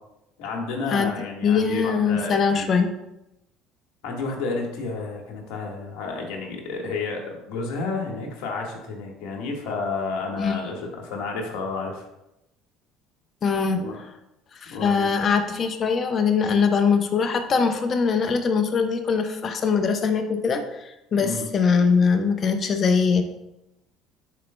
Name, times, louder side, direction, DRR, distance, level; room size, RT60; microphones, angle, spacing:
voice 1, 0.4-2.7 4.0-12.0 13.7-14.0 14.7-15.1 21.2-21.5, left 4 dB, 70° left, 1 dB, 1.5 m, -31 dB
voice 2, 1.4-2.9 10.4-10.6 13.4-13.8 14.6-23.2, left 5 dB, 45° left, 6 dB, 0.8 m, -22 dB
10.0 x 4.4 x 2.2 m, 0.90 s
hypercardioid pair, 70°, 0 cm